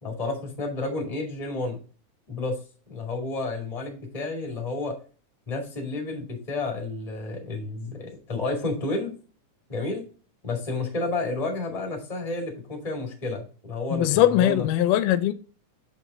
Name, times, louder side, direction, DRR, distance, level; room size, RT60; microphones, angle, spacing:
voice 1, 0.0-1.8 2.3-2.6 2.9-4.9 5.5-9.1 9.7-10.0 10.4-14.7, left 3 dB, 15° left, 1.8 m, -31 dB
voice 2, 13.9-15.3, left 12 dB, 85° left, 2.1 m, -20 dB
7.6 x 5.4 x 3.6 m
omnidirectional pair, 3.8 m